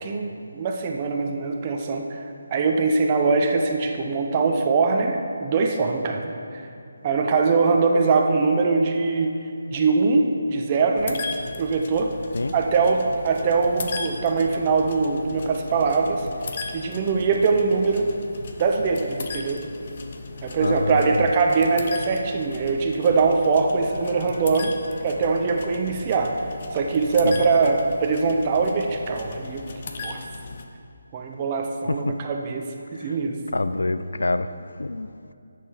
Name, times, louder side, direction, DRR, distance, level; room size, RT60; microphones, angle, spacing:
voice 1, 0.0-2.2 2.5-6.6 7.0-9.3 9.7-11.2 11.6-12.1 12.5-16.3 16.7-18.1 18.6-19.6 20.4-24.8 25.0-26.4 26.7-29.7 30.0-30.2 31.1-33.4, right 4 dB, 30° right, 2 dB, 0.7 m, -22 dB
sound 1, 11.0-30.7, left 3 dB, 45° left, 0.8 m, -37 dB
voice 2, 20.6-21.3 27.2-27.4 31.9-32.2 32.9-33.2 33.5-35.3, left 2 dB, 85° left, 12 dB, 0.4 m, -27 dB
8.3 x 6.7 x 5.7 m, 2.6 s
figure-of-eight pair, 160°, 0 cm